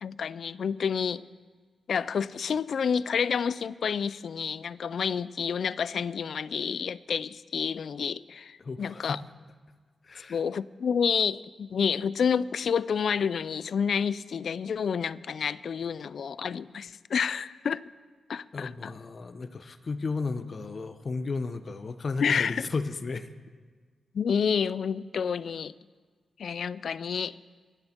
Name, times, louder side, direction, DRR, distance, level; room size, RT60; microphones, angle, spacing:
voice 1, 0.0-1.3 1.9-9.2 10.3-17.8 18.3-18.9 22.2-22.7 24.1-25.7 26.4-27.4, left 6 dB, 65° left, 19 dB, 0.3 m, -29 dB
voice 2, 8.6-9.2 10.0-10.4 18.5-23.3, left 4 dB, 45° left, 12 dB, 0.7 m, -34 dB
23.0 x 8.0 x 4.4 m, 1.5 s
wide cardioid pair, 105°, 0 cm